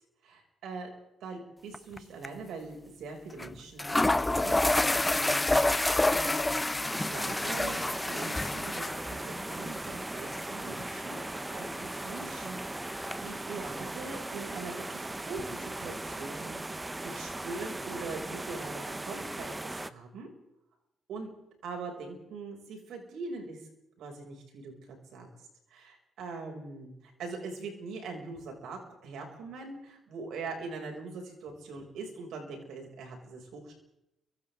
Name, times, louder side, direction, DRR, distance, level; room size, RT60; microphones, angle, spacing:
voice 1, 0.2-0.9 1.2-6.3 6.8-11.2 11.5-12.9 13.2-16.6 17.0-20.3 21.1-21.3 21.6-23.7 24.0-25.3 25.7-33.7, right 3 dB, 80° right, 2 dB, 6.8 m, -42 dB
sound 1, 1.7-2.0 2.2-2.3 3.4-3.5 3.8-13.2, left 2 dB, 15° left, 0.9 m, -30 dB
sound 2, 6.9-19.9, right 2 dB, 15° right, 1.0 m, -38 dB
30.0 x 24.5 x 3.9 m, 0.86 s
cardioid pair, 90°, 0 cm